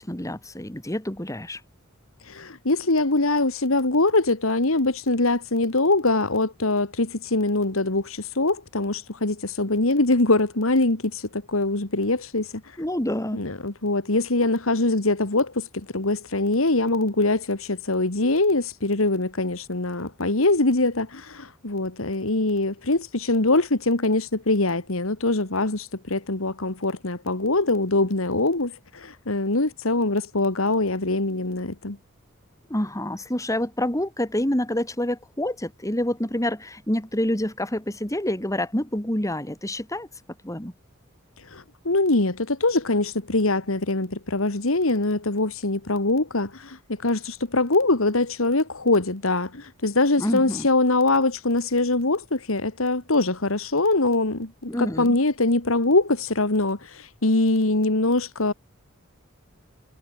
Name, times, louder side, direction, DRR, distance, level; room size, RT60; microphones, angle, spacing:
voice 1, 0.0-1.6 12.8-13.4 32.7-40.1 40.4-40.7 50.2-50.7 54.7-55.2, left 1 dB, 15° left, 2.8 m, -27 dB
voice 2, 2.2-12.8 13.3-32.0 41.4-58.5, left 2 dB, 75° left, 2.1 m, -23 dB
head